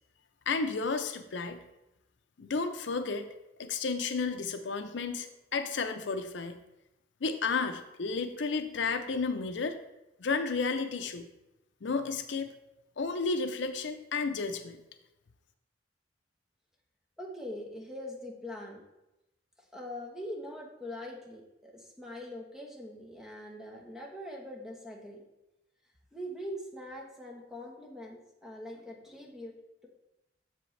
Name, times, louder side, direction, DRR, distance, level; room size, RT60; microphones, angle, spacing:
voice 1, 0.5-1.6 2.4-3.2 3.6-6.6 7.2-9.8 10.2-11.3 11.8-12.5 13.0-14.8, left 4 dB, 70° left, 8 dB, 0.6 m, -32 dB
voice 2, 17.2-18.8 19.7-25.2 26.1-29.5, left 1 dB, 5° right, -1 dB, 1.1 m, -42 dB
7.5 x 7.0 x 3.2 m, 0.93 s
head